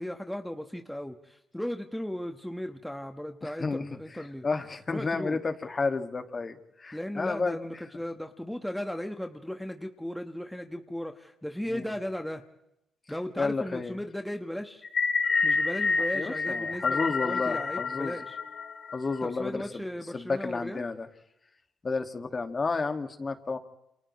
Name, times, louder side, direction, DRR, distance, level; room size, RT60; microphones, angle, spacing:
voice 1, 0.0-4.5 4.9-5.4 6.9-12.4 13.1-14.8 15.4-18.4 19.2-20.8, left 1 dB, 5° left, 5 dB, 1.5 m, -36 dB
voice 2, 3.4-3.8 4.1-7.6 11.7-11.9 13.4-14.0 16.1-18.1 18.9-19.8 20.1-21.1 21.8-23.6, left 4 dB, 30° left, 7 dB, 2.1 m, -31 dB
sound 1, 14.8-19.2, left 4 dB, 50° left, 3.4 m, -28 dB
29.0 x 28.0 x 3.3 m, 0.85 s
cardioid pair, 90°, 0 cm